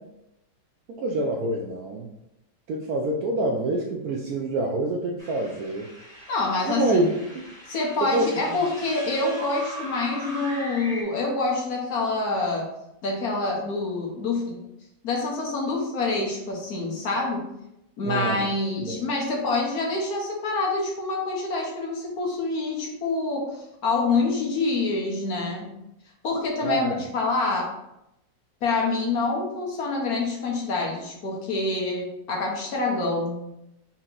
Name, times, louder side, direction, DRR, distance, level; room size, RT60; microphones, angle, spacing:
voice 1, 1.0-2.1 2.7-5.9 6.6-7.1 8.0-8.6 18.1-18.5 18.8-19.0 26.6-27.0, right 2 dB, 75° right, 0 dB, 0.9 m, -26 dB
sound 1, 5.2-11.0, right 1 dB, ahead, 1.3 m, -40 dB
voice 2, 6.3-7.1 7.7-12.7 13.0-14.6 15.0-17.4 18.0-25.7 26.2-27.7 28.6-33.4, left 3 dB, 60° left, -2 dB, 1.3 m, -26 dB
4.4 x 2.9 x 3.7 m, 0.87 s
omnidirectional pair, 2.0 m